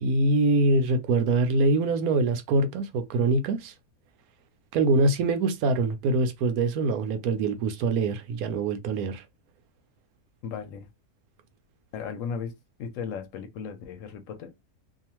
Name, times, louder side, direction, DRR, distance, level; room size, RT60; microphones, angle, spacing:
voice 1, 0.0-3.7 4.7-9.2, right 3 dB, 80° right, 1.1 m, -24 dB
voice 2, 10.4-10.9 11.9-12.5 12.8-14.5, left 6 dB, 70° left, 0.9 m, -36 dB
2.6 x 2.4 x 2.9 m
omnidirectional pair, 1.5 m